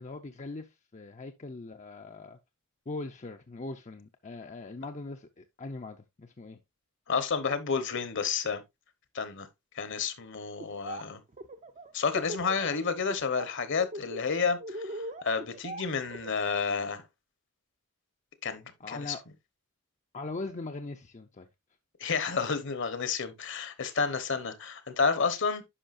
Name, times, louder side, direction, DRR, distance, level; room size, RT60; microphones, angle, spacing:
voice 1, 0.0-2.4 2.9-6.6 18.8-19.2 20.1-21.5, left 3 dB, 35° left, 0.6 m, -41 dB
voice 2, 7.1-8.6 9.1-9.5 9.7-11.2 11.9-14.6 14.8-17.0 18.4-19.1 22.0-25.6, left 5 dB, 55° left, 1.1 m, -30 dB
Laughter, 10.6-11.0 11.3-12.7 13.1-13.5 13.8-16.6, right 1 dB, 35° right, 0.6 m, -40 dB
10.0 x 5.6 x 2.5 m
head